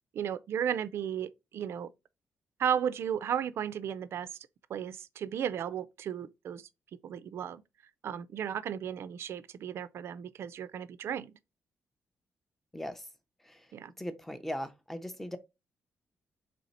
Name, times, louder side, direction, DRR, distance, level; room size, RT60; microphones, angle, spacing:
voice 1, 0.1-1.9 2.6-4.3 4.7-6.7 7.0-7.6 8.0-11.4 13.7-13.9, right 9 dB, 60° right, 0.4 m, -34 dB
voice 2, 12.7-13.0 13.5-13.6 14.0-15.4, equal, 5° left, 0.5 m, -38 dB
4.2 x 3.2 x 4.0 m
wide cardioid pair, 160°, 5 cm